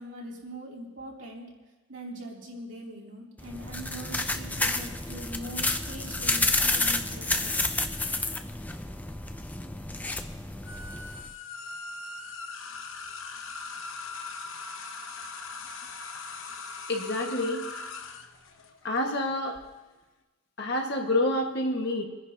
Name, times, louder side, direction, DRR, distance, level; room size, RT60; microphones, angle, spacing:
voice 1, 0.0-1.4 1.9-7.6, right 1 dB, 65° right, -3 dB, 3.0 m, -42 dB
sound 1, 3.4-11.3, left 2 dB, 10° left, 0.4 m, -30 dB
sound 2, 10.7-19.6, left 4 dB, 70° left, 1.0 m, -40 dB
voice 2, 16.9-17.7 18.8-19.6 20.6-22.0, left 1 dB, 50° left, 1 dB, 1.6 m, -28 dB
29.0 x 10.5 x 2.8 m, 1.1 s
head